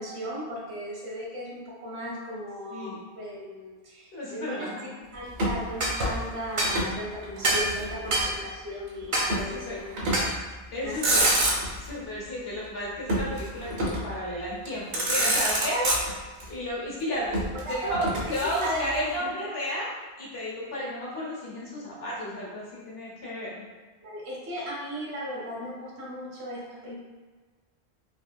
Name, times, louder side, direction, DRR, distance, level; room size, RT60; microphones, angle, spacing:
voice 1, 0.0-4.7 5.1-10.0 10.8-11.2 17.6-17.9 18.4-19.3 24.0-26.9, equal, 90° right, -4 dB, 1.1 m, -36 dB
voice 2, 4.1-5.1 8.1-8.5 9.1-9.8 10.7-11.3 11.7-15.9 16.5-19.9 20.2-23.6, equal, 75° left, -5 dB, 1.1 m, -33 dB
Motor vehicle (road), 5.3-7.0 7.2-8.3 9.3-9.5 10.0-10.4 10.8-11.9 13.1-14.1 14.7-14.8 14.9-16.4 17.3-19.0, right 1 dB, 70° right, 0.9 m, -27 dB
sound 1, 5.8-6.0 6.6-6.8 7.4-7.7 8.1-8.3 9.1-9.3 10.1-10.3 11.2-11.5, right 1 dB, 50° right, 0.4 m, -25 dB
3.1 x 2.5 x 2.2 m, 1.4 s
omnidirectional pair, 1.0 m